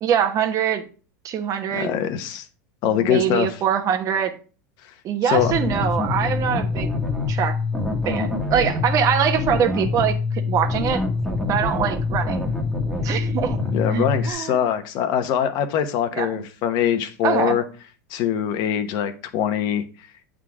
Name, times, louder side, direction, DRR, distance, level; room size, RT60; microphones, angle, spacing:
voice 1, 0.0-0.8 1.2-1.9 2.9-4.3 5.0-6.9 7.3-7.6 8.0-11.0 11.5-12.5 13.0-13.6 13.9-14.7 16.1-16.3 17.2-17.6, right 8 dB, 40° right, 6 dB, 1.2 m, -23 dB
voice 2, 1.7-2.4 2.8-3.5 5.2-5.5 13.7-17.6 18.1-19.8, left 9 dB, 55° left, 9 dB, 1.0 m, -23 dB
sound 1, 5.3-14.3, left 3 dB, ahead, 1.3 m, -25 dB
8.3 x 3.9 x 4.8 m, 0.37 s
supercardioid pair, 120°, 9 cm